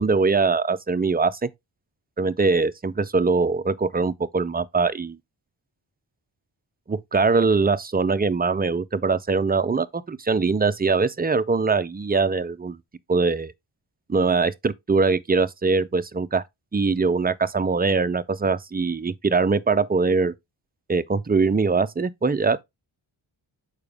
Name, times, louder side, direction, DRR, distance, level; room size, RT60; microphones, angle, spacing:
voice 1, 0.0-1.5 2.2-5.2 6.9-12.8 13.1-13.5 14.1-16.4 16.7-20.3 20.9-22.6, right 4 dB, 20° right, 0.5 m, -22 dB
6.6 x 4.9 x 3.4 m
wide cardioid pair, 95°, 47 cm